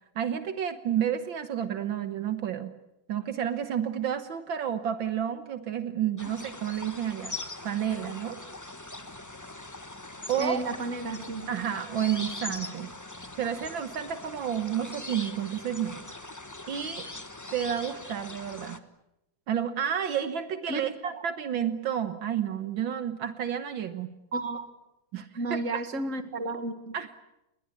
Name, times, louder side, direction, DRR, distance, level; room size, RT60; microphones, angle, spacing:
voice 1, 0.2-2.7 3.1-7.4 7.6-8.4 10.3-10.6 11.5-12.9 13.4-16.0 16.7-17.0 17.5-18.8 19.5-24.1 25.1-25.7 26.9-27.2, right 9 dB, 70° right, 10 dB, 1.9 m, -30 dB
sound 1, 6.2-18.8, left 2 dB, 10° left, 1.0 m, -41 dB
voice 2, 10.4-11.5 20.7-20.8 21.1-21.2 24.3-24.7 25.4-26.9, right 2 dB, 40° right, 9 dB, 2.2 m, -32 dB
29.5 x 21.0 x 8.6 m, 0.91 s
omnidirectional pair, 2.2 m